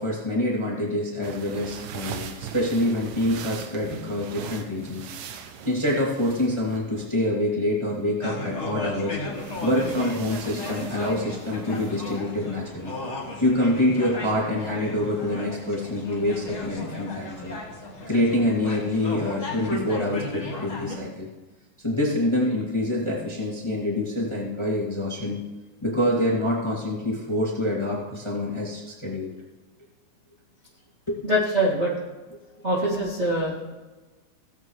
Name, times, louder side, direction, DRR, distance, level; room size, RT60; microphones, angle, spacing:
voice 1, 0.0-5.1 5.6-9.2 9.6-12.9 13.4-17.6 18.1-21.3 21.8-25.4 25.8-29.3 31.1-31.2, left 1 dB, 10° left, -5 dB, 2.0 m, -26 dB
sound 1, 1.2-7.2 9.3-12.3, right 7 dB, 75° right, 2.2 m, -40 dB
sound 2, 8.2-21.0, left 2 dB, 25° left, 1.9 m, -35 dB
voice 2, 31.2-31.9 32.6-33.7, equal, 25° right, -7 dB, 1.9 m, -24 dB
18.0 x 8.6 x 3.2 m, 1.2 s
omnidirectional pair, 3.5 m